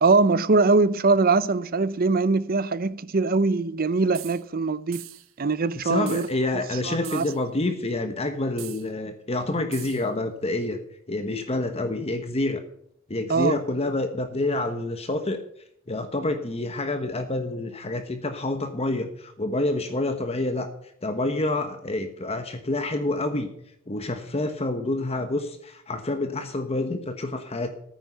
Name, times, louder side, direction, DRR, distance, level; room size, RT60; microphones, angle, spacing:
voice 1, 0.0-5.0 5.4-6.3 6.8-7.3 13.3-13.6, right 3 dB, 45° right, 0.6 m, -22 dB
sound 1, 4.1-4.4 4.9-5.3 6.1-6.4 7.0-7.4 8.6-8.9 9.7-10.1, right 15 dB, 75° right, 1.0 m, -41 dB
voice 2, 5.7-10.8 11.1-12.6 13.1-15.4 15.9-20.7 21.0-23.5 23.9-27.7, left 2 dB, 30° left, 1.1 m, -28 dB
14.0 x 9.4 x 5.6 m
head